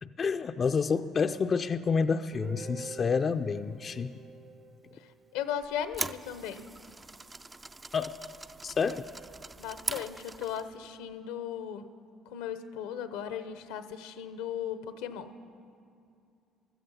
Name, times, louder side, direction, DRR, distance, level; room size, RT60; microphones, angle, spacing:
voice 1, 0.0-4.2 7.9-8.2 8.6-9.0, left 5 dB, 45° left, 9 dB, 0.4 m, -29 dB
Guitar, 2.3-6.2, right 4 dB, 40° right, 1.1 m, -47 dB
voice 2, 5.3-6.7 9.6-11.9 12.3-15.3, left 9 dB, 85° left, 11 dB, 0.7 m, -37 dB
sound 1, 5.6-10.7, right 2 dB, 20° right, 0.4 m, -41 dB
15.0 x 13.0 x 5.5 m, 2.5 s
supercardioid pair, 65°, 0 cm